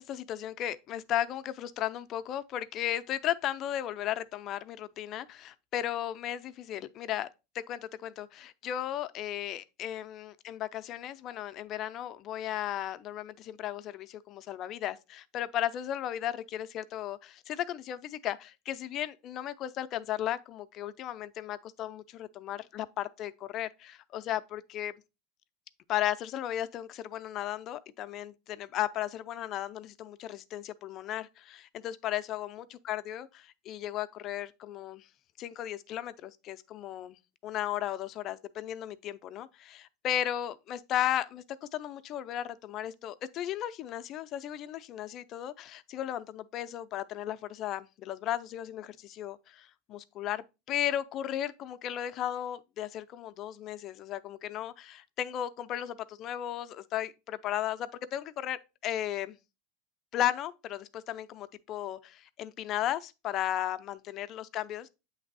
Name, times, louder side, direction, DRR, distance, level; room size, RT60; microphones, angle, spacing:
voice 1, 0.0-7.3 7.5-24.9 25.9-33.3 33.6-35.1 35.4-59.4 60.1-64.9, left 11 dB, 40° left, 0.5 m, -35 dB
7.9 x 3.3 x 4.0 m
supercardioid pair, 130°, 0 cm